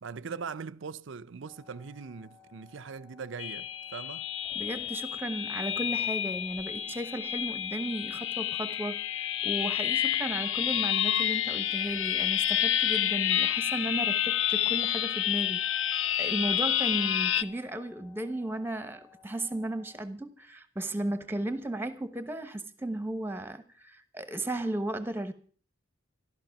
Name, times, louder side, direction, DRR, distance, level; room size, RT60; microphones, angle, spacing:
voice 1, 0.0-4.3, right 5 dB, 70° right, 0.6 m, -41 dB
sound 1, 1.4-20.0, left 5 dB, 25° left, 2.3 m, -58 dB
sound 2, 3.4-17.4, left 11 dB, 70° left, 0.6 m, -29 dB
voice 2, 4.5-25.3, right 1 dB, 10° right, 1.0 m, -35 dB
14.0 x 12.5 x 5.9 m
head